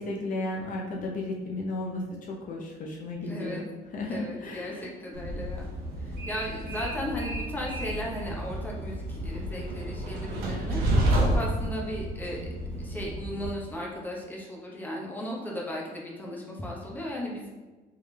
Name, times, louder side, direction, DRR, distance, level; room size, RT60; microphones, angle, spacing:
voice 1, 0.0-3.6 3.9-4.9, left 2 dB, 50° left, -1 dB, 0.7 m, -34 dB
voice 2, 3.2-3.6 4.1-5.6 6.1-12.4 12.8-17.5, equal, 10° left, -3 dB, 1.0 m, -36 dB
Train, 5.1-13.5, right 1 dB, 70° right, 1.0 m, -30 dB
3.5 x 3.4 x 3.3 m, 1.2 s
cardioid pair, 110°, 17 cm